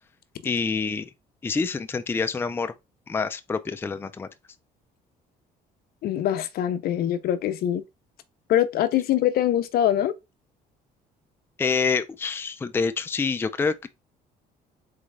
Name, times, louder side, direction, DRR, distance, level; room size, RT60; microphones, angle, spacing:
voice 1, 0.4-1.1 1.4-2.7 3.1-4.3 11.6-13.9, left 5 dB, 15° left, 0.4 m, -27 dB
voice 2, 6.0-7.8 8.5-10.1, left 11 dB, 65° left, 0.6 m, -23 dB
4.1 x 3.7 x 3.2 m
cardioid pair, 110°, 17 cm